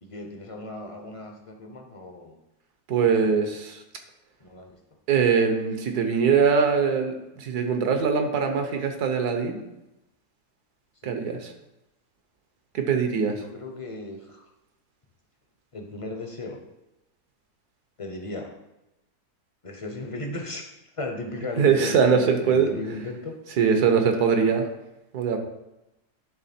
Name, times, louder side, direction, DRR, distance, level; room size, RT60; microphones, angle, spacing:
voice 1, 0.0-2.4 3.0-3.4 4.4-4.8 11.0-11.2 13.2-14.4 15.7-16.6 18.0-18.5 19.6-20.6 21.0-23.3, left 2 dB, 35° left, 2 dB, 0.5 m, -36 dB
voice 2, 2.9-3.8 5.1-9.6 11.0-11.5 12.7-13.4 21.6-22.7 23.6-24.7 25.1-25.4, right 6 dB, 75° right, 5 dB, 1.5 m, -22 dB
10.5 x 3.5 x 4.3 m, 0.92 s
omnidirectional pair, 1.7 m